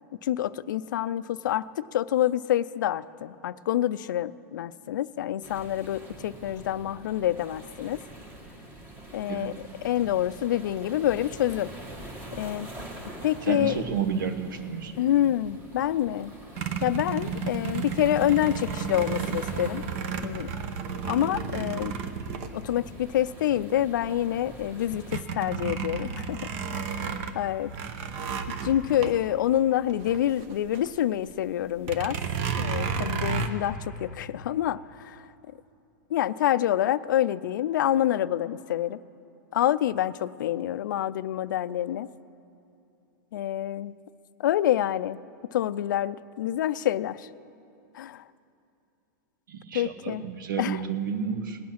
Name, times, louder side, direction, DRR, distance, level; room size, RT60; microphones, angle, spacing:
voice 1, 0.2-8.0 9.1-9.5 9.8-11.7 12.4-12.7 13.2-13.8 15.0-16.3 16.8-19.8 20.2-20.5 21.0-22.0 22.5-26.4 26.7-27.7 28.6-32.2 32.6-35.2 36.1-39.0 39.5-42.1 43.3-43.9 44.4-45.2 45.5-47.3 47.9-48.2 49.7-50.2 50.6-50.8, left 12 dB, 80° left, 16 dB, 0.4 m, -27 dB
sound 1, 5.4-25.2, right 1 dB, 20° right, 1.5 m, -45 dB
voice 2, 13.4-14.9 49.5-51.6, right 6 dB, 85° right, 9 dB, 1.1 m, -31 dB
sound 2, 16.6-23.2 23.8-23.9 24.2-30.9 31.2-31.3 31.8-33.5, right 6 dB, 40° right, 0.8 m, -32 dB
18.5 x 8.6 x 5.8 m, 2.7 s
supercardioid pair, 165°, 10 cm